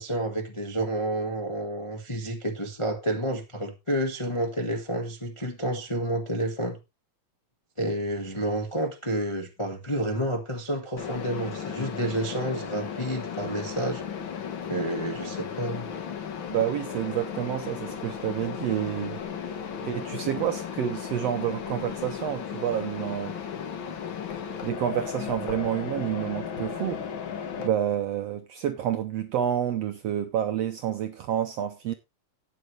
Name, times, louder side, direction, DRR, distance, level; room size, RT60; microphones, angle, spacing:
voice 1, 0.0-6.8 7.8-14.0 14.7-15.9, right 1 dB, 35° left, 0.5 m, -30 dB
Mechanisms, 11.0-27.7, left 7 dB, 50° left, 1.5 m, -35 dB
voice 2, 16.5-19.2 19.5-19.6 19.8-23.4 24.6-27.0 27.6-31.9, right 10 dB, 75° right, 1.5 m, -29 dB
13.0 x 9.5 x 3.2 m
omnidirectional pair, 3.8 m